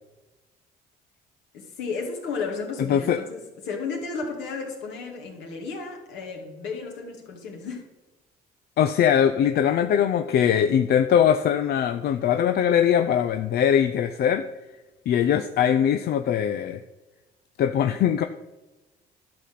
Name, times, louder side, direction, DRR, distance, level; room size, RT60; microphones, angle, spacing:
voice 1, 1.5-7.9, left 4 dB, 80° left, 1 dB, 2.4 m, -33 dB
voice 2, 8.8-14.4 15.1-16.8 17.6-18.2, left 9 dB, 60° left, 8 dB, 0.6 m, -21 dB
11.5 x 4.2 x 7.6 m, 1.1 s
supercardioid pair, 80°, 18 cm